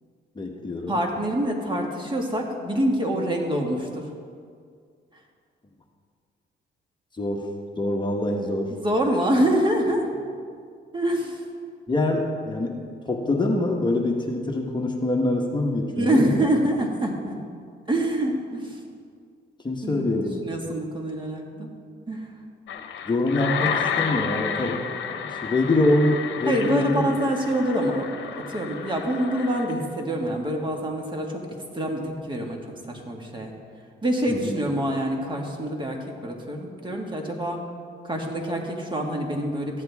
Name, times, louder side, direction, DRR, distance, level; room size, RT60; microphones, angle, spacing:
voice 1, 0.4-1.0 7.2-7.5 7.8-8.7 11.9-12.8 13.1-16.5 19.6-20.4 23.1-24.8 25.1-27.0 34.3-34.6, left 2 dB, 20° left, 1 dB, 1.2 m, -24 dB
voice 2, 0.9-4.1 8.7-10.1 10.9-11.4 15.9-17.4 17.9-18.8 19.8-21.7 22.1-22.3 26.5-28.1 28.3-31.4 31.7-33.5 34.0-37.6 38.0-39.8, right 1 dB, 25° right, 1 dB, 1.9 m, -26 dB
sound 1, 22.7-29.8, left 7 dB, 70° left, 0.9 m, -31 dB
15.0 x 10.5 x 3.6 m, 2.1 s
cardioid pair, 90°, 20 cm